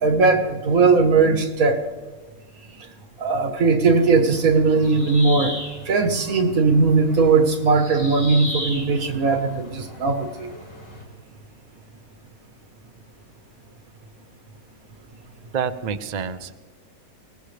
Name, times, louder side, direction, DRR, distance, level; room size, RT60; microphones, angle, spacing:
voice 1, 0.0-1.8 3.2-5.6 5.9-10.5, right 4 dB, 70° right, 7 dB, 1.7 m, -19 dB
sound 1, 4.0-11.0, left 1 dB, 55° left, 4.4 m, -37 dB
voice 2, 15.5-16.5, right 7 dB, 45° right, 9 dB, 0.6 m, -27 dB
22.5 x 19.0 x 3.3 m, 1.4 s
omnidirectional pair, 1.5 m